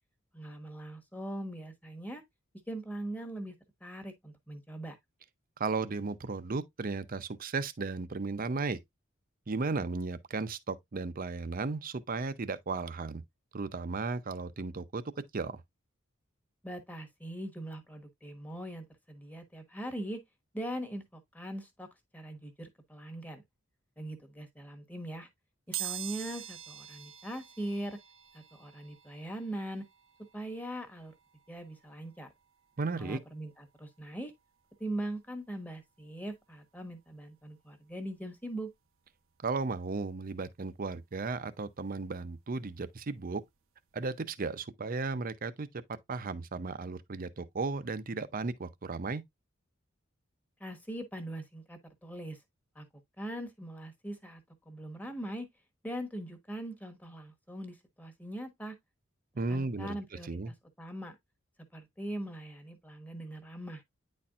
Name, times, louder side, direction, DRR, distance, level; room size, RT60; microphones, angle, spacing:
voice 1, 0.3-2.2 2.7-3.5 3.8-5.0 16.6-20.2 20.5-21.9 22.1-23.4 24.0-25.3 25.7-28.0 28.3-29.8 30.3-31.1 31.5-32.3 32.9-34.3 34.8-38.7 50.6-52.4 52.7-52.8 53.2-55.5 55.8-58.7 59.5-61.2 61.7-63.8, right 1 dB, 10° left, 1.2 m, -41 dB
voice 2, 5.6-8.8 9.5-13.2 13.5-15.0 15.3-15.6 32.8-33.2 39.4-43.4 43.9-49.2 59.4-60.0 60.2-60.5, right 3 dB, 45° right, 0.6 m, -35 dB
sound 1, 25.7-36.4 36.9-37.0 38.1-38.2 38.5-40.6 41.0-43.6 43.9-44.1 44.4-44.5, right 13 dB, 75° right, 0.8 m, -47 dB
9.6 x 4.2 x 2.4 m
head